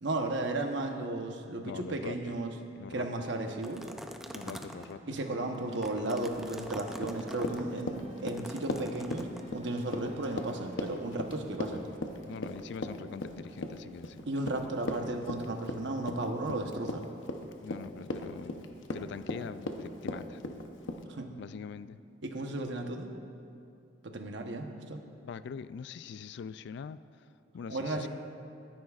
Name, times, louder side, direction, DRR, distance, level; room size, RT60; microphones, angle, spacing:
voice 1, 0.0-2.5 2.9-3.9 5.1-11.8 14.3-17.0 21.1-21.3 22.2-23.1 24.0-25.0 27.7-28.1, right 2 dB, 70° right, 4 dB, 1.0 m, -34 dB
voice 2, 1.6-2.4 2.8-3.1 4.3-5.0 12.3-14.3 17.6-20.4 21.4-22.0 25.2-27.0 27.5-28.1, left 6 dB, 65° left, 15 dB, 0.3 m, -43 dB
sound 1, 3.6-4.9 5.5-7.6 8.3-9.4, equal, ahead, 0.5 m, -45 dB
sound 2, 4.4-13.9, equal, 35° right, 0.9 m, -51 dB
Run, 6.9-21.0, left 2 dB, 80° left, 0.8 m, -38 dB
22.0 x 10.5 x 2.4 m, 2.6 s
head